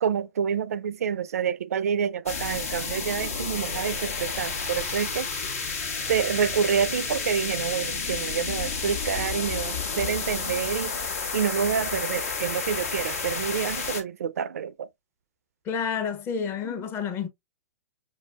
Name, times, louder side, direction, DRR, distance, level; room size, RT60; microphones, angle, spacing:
voice 1, 0.0-5.3 6.1-10.9 11.3-14.9, right 7 dB, 75° right, 0.4 m, -28 dB
sound 1, 2.3-14.0, left 5 dB, 70° left, 1.1 m, -31 dB
voice 2, 15.7-17.3, left 6 dB, 30° left, 0.8 m, -29 dB
5.3 x 2.6 x 2.2 m
hypercardioid pair, 110°, 8 cm